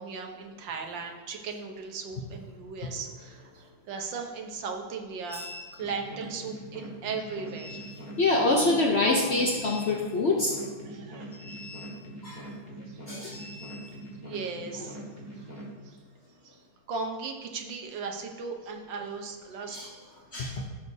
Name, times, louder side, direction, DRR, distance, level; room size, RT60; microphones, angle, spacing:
voice 1, 0.0-5.4 5.7-8.1 10.8-11.7 12.7-13.0 13.5-13.6 14.2-15.0 15.4-15.5 15.8-16.0 16.4-16.6 16.9-20.1 20.4-20.6, right 4 dB, 65° right, 3 dB, 1.6 m, -37 dB
voice 2, 5.3-5.6 7.6-7.8 8.2-10.5 11.4-11.9 12.2-12.4 13.1-13.9 19.7-19.9 20.3-20.7, left 2 dB, 80° left, 0 dB, 0.5 m, -27 dB
sound 1, 5.8-15.7, right 1 dB, 25° left, 1.6 m, -43 dB
14.0 x 6.4 x 2.7 m, 1.4 s
omnidirectional pair, 2.3 m